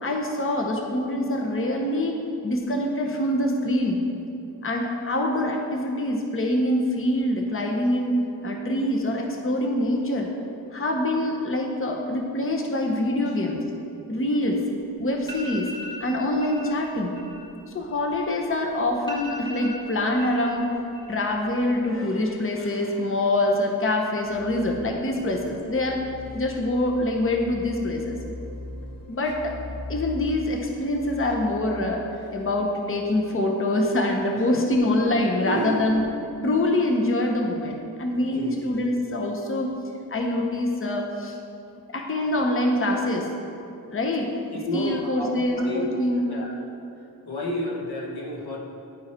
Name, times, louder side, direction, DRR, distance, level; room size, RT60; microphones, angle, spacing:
voice 1, 0.0-2.2 2.4-4.0 4.6-8.1 8.4-10.3 10.7-13.6 14.1-14.6 15.0-15.7 16.0-17.2 17.7-20.7 21.1-26.0 26.3-28.2 29.1-29.6 29.9-32.0 32.3-36.0 36.4-39.7 40.1-41.4 41.9-43.3 43.8-44.3 44.7-46.3, left 1 dB, 35° left, 1 dB, 0.9 m, -25 dB
sound 1, 14.8-14.9 15.2-16.0 16.4-16.7 17.0-18.5 18.8-18.9 19.1-20.5 20.8-21.4 21.7-22.2, left 1 dB, 10° left, 1.6 m, -39 dB
sound 2, 24.2-34.0, left 1 dB, 60° left, 1.0 m, -41 dB
voice 2, 35.3-35.9 38.3-38.5 44.2-45.8 46.3-46.5 47.2-48.6, left 1 dB, 90° left, -2 dB, 1.2 m, -31 dB
10.0 x 4.7 x 4.3 m, 2.6 s
wide cardioid pair, 75°, 37 cm